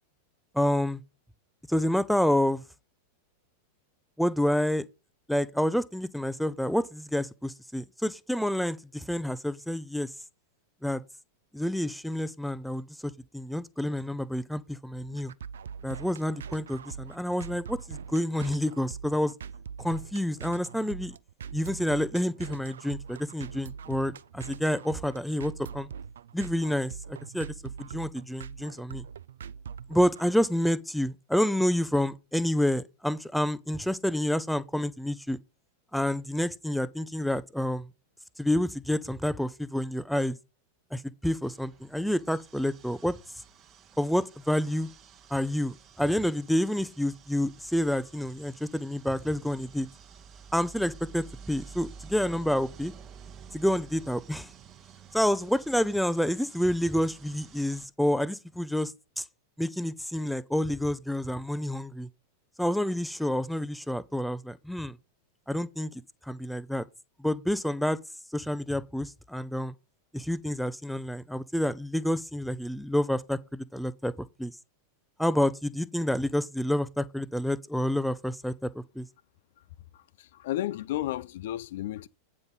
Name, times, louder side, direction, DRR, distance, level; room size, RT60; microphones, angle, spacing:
voice 1, 0.5-1.0 1.7-2.6 4.2-4.8 5.3-10.1 10.8-11.0 11.5-15.3 15.8-19.3 19.8-21.1 21.5-25.9 26.3-29.1 29.9-35.4 35.9-37.9 38.4-40.4 40.9-43.2 44.0-44.9 45.3-49.9 50.5-52.9 53.5-54.5 55.1-59.2 59.6-62.1 62.6-65.0 65.5-65.9 66.3-66.8 67.2-68.0 68.3-69.7 70.1-74.5 75.2-79.1, left 1 dB, ahead, 0.5 m, -28 dB
sound 1, 14.9-30.3, right 7 dB, 65° right, 0.3 m, -42 dB
sound 2, 41.4-57.9, right 6 dB, 30° right, 1.0 m, -51 dB
voice 2, 79.9-82.1, left 14 dB, 55° left, 0.4 m, -33 dB
9.2 x 5.3 x 5.4 m
figure-of-eight pair, 90°, 0 cm